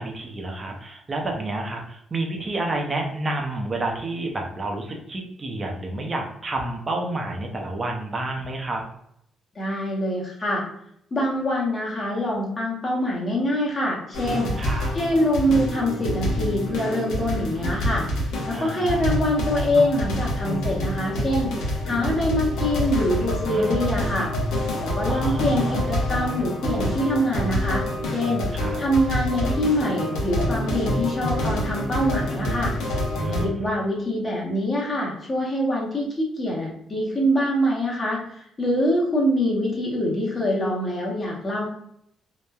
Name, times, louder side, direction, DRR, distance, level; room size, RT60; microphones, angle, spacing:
voice 1, 0.0-8.8 14.6-14.9 18.5-19.0 23.5-23.9 25.1-25.8 28.5-28.8 33.2-33.6, right 2 dB, 30° right, 1 dB, 0.5 m, -30 dB
voice 2, 9.5-10.6 11.1-14.5 14.9-18.1 18.5-24.3 24.8-28.5 28.8-32.7 33.4-41.7, equal, 35° left, -3 dB, 0.7 m, -24 dB
sound 1, 14.1-33.5, equal, 90° left, 0.6 m, -27 dB
2.9 x 2.1 x 2.2 m, 0.72 s
cardioid pair, 90°, 0 cm